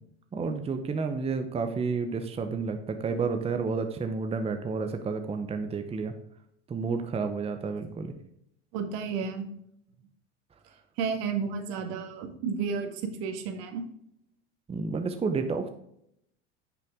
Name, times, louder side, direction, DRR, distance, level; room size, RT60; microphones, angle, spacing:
voice 1, 0.3-6.1 6.7-8.1 14.7-15.7, right 4 dB, 15° right, 6 dB, 0.8 m, -30 dB
voice 2, 8.7-9.5 11.0-13.8, right 5 dB, 65° right, 7 dB, 1.7 m, -32 dB
10.0 x 5.9 x 3.6 m, 0.75 s
hypercardioid pair, 105°, 36 cm